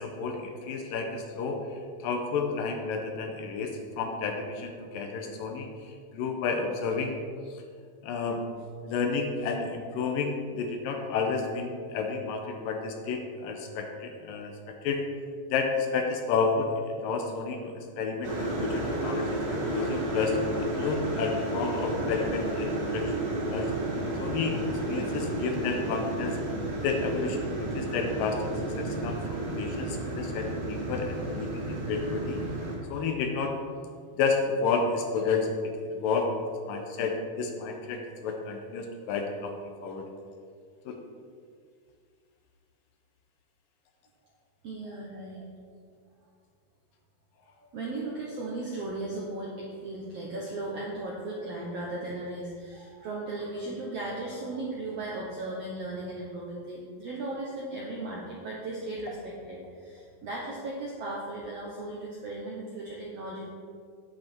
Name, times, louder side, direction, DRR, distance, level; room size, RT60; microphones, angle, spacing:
voice 1, 0.0-7.2 8.0-8.4 8.8-15.0 15.5-23.7 24.2-24.6 24.9-26.4 26.8-32.4 32.9-33.6 34.2-36.4 36.7-39.5 39.8-40.1 40.9-41.0, left 4 dB, 75° left, 4 dB, 2.3 m, -31 dB
sound 1, 18.2-32.8, right 2 dB, 40° right, 3.0 m, -32 dB
voice 2, 44.6-45.5 47.6-63.5, right 2 dB, 70° right, -3 dB, 1.5 m, -36 dB
9.5 x 8.1 x 4.4 m, 2.2 s
omnidirectional pair, 4.4 m